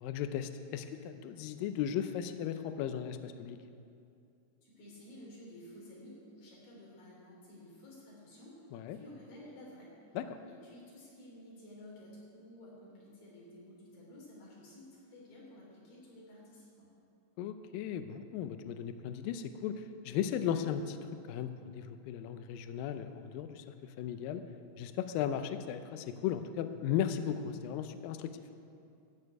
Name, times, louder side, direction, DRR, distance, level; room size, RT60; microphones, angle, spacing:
voice 1, 0.0-3.6 8.7-9.0 10.2-10.3 17.4-21.0 21.2-24.4 24.8-28.4, left 9 dB, 90° left, 9 dB, 2.0 m, -36 dB
voice 2, 4.6-9.9 10.5-16.9, left 1 dB, 55° left, -4 dB, 4.9 m, -53 dB
13.5 x 6.6 x 8.7 m, 2.6 s
omnidirectional pair, 4.8 m